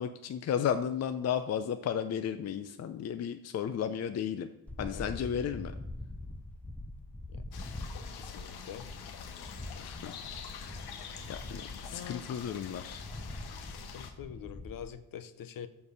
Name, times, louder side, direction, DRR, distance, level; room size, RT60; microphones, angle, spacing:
voice 1, 0.0-4.5 4.8-5.7 9.8-10.2 10.6-10.8 11.3-13.0, left 8 dB, 45° left, 0.6 m, -34 dB
sound 1, 4.7-14.9, left 2 dB, 5° left, 0.3 m, -44 dB
sound 2, 7.5-14.1, left 6 dB, 85° left, 1.3 m, -45 dB
voice 2, 8.2-8.9 11.9-12.3 13.7-15.7, left 9 dB, 65° left, 0.9 m, -45 dB
14.0 x 4.7 x 6.7 m
cardioid pair, 135°, 37 cm